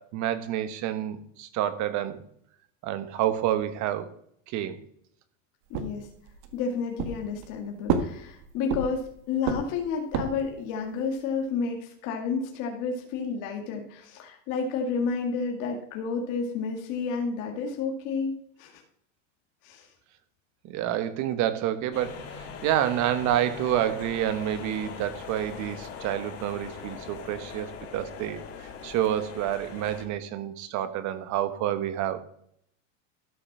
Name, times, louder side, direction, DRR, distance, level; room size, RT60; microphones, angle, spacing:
voice 1, 0.0-2.2 2.8-4.1 4.5-4.8 20.6-28.4 28.8-32.2, right 11 dB, 50° right, 12 dB, 1.3 m, -28 dB
voice 2, 5.7-6.1 6.5-18.8 19.6-19.9, left 5 dB, 55° left, 2 dB, 2.1 m, -31 dB
sound 1, 5.7-6.6 7.0-7.6 7.9-9.1 9.4-10.5, right 6 dB, 65° right, 1.6 m, -30 dB
sound 2, 21.9-30.0, left 6 dB, 40° left, 2.6 m, -41 dB
13.0 x 5.9 x 6.0 m, 0.68 s
supercardioid pair, 135°, 37 cm